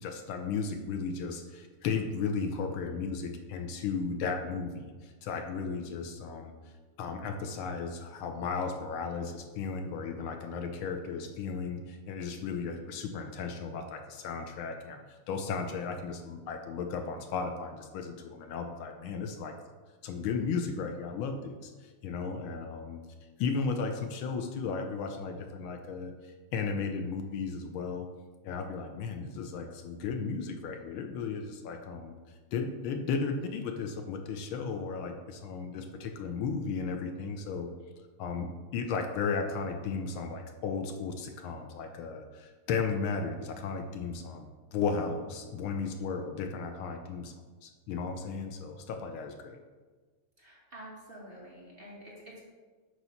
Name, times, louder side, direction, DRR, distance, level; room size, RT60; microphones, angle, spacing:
voice 1, 0.0-6.5 7.0-19.5 20.0-23.0 23.4-28.1 28.4-32.1 32.5-37.7 38.2-47.3 47.6-49.6, left 5 dB, 75° left, 5 dB, 1.4 m, -35 dB
voice 2, 50.4-52.5, equal, 30° right, -5 dB, 1.4 m, -48 dB
8.1 x 3.1 x 5.6 m, 1.4 s
omnidirectional pair, 2.4 m